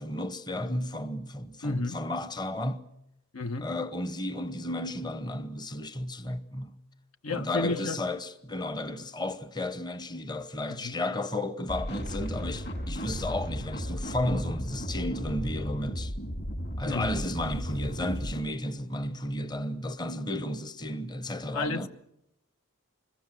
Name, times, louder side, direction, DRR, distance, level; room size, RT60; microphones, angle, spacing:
voice 1, 0.0-2.9 3.6-6.8 7.3-16.1 16.8-21.9, left 1 dB, 20° left, 0.9 m, -33 dB
voice 2, 1.6-2.0 3.3-3.7 7.2-8.0 10.8-11.0 16.9-17.1 21.5-21.9, left 3 dB, 75° left, 1.1 m, -32 dB
sound 1, 11.7-18.4, equal, 55° left, 6.1 m, -35 dB
25.5 x 21.5 x 7.6 m
head